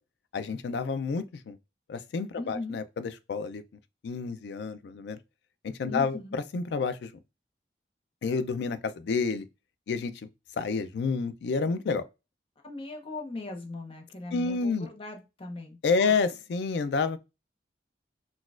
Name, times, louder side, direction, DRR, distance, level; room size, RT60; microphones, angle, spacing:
voice 1, 0.3-1.6 1.9-3.6 4.0-5.2 5.6-7.1 8.2-9.5 9.9-10.1 10.6-12.0 14.3-14.9 15.8-17.2, left 4 dB, 70° left, 0.3 m, -29 dB
voice 2, 2.4-2.8 5.9-6.4 12.6-16.1, left 2 dB, 30° left, 0.7 m, -39 dB
4.0 x 2.3 x 2.4 m
head